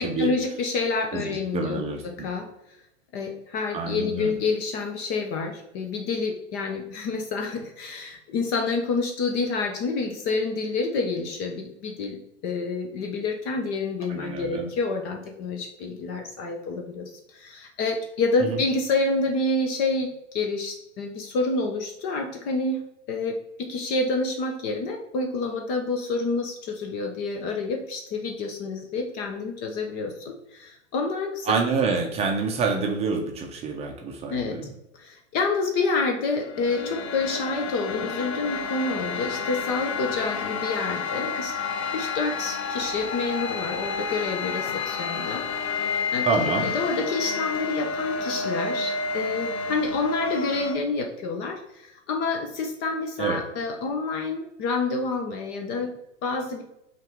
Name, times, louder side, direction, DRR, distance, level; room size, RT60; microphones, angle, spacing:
voice 1, 0.0-2.5 3.1-12.2 12.4-31.5 34.3-34.6 34.9-41.5 41.9-45.5 46.1-46.3 46.6-56.6, left 3 dB, 25° left, 3 dB, 0.5 m, -28 dB
voice 2, 1.1-2.3 3.7-4.3 14.1-14.7 18.4-18.6 31.5-34.7 46.2-46.7 53.2-53.4, right 4 dB, 15° right, 1 dB, 0.6 m, -27 dB
sound 1, 36.2-50.7, left 4 dB, 55° left, 1.0 m, -30 dB
5.3 x 2.5 x 3.4 m, 0.83 s
figure-of-eight pair, 105°, 37 cm